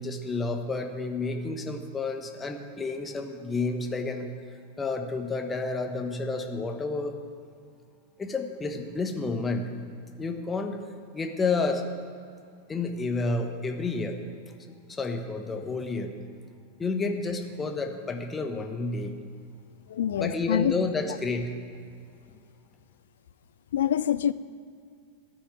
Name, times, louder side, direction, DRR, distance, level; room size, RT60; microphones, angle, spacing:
voice 1, 0.0-4.3 4.8-7.2 8.2-9.7 10.2-10.8 11.1-11.9 12.7-14.2 14.7-16.1 16.8-19.2 20.2-21.5, left 3 dB, 15° left, 5 dB, 1.2 m, -30 dB
voice 2, 19.9-20.7 23.7-24.3, left 10 dB, 60° left, 16 dB, 0.4 m, -25 dB
14.5 x 6.4 x 9.5 m, 2.3 s
figure-of-eight pair, 90°, 0 cm